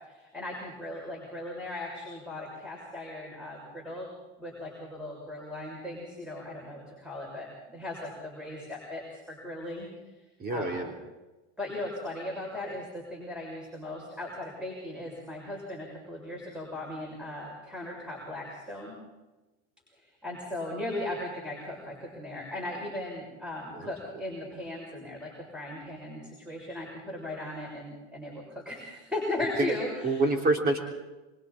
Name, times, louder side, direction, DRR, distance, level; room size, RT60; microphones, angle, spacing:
voice 1, 0.1-4.1 4.4-9.9 10.5-10.8 11.6-18.9 20.2-30.2, left 1 dB, 5° right, -2 dB, 6.8 m, -37 dB
voice 2, 10.4-10.9 23.8-23.9 29.6-29.7 30.0-30.8, right 2 dB, 30° right, 2 dB, 3.5 m, -26 dB
26.5 x 25.5 x 4.3 m, 1.1 s
hypercardioid pair, 105°, 33 cm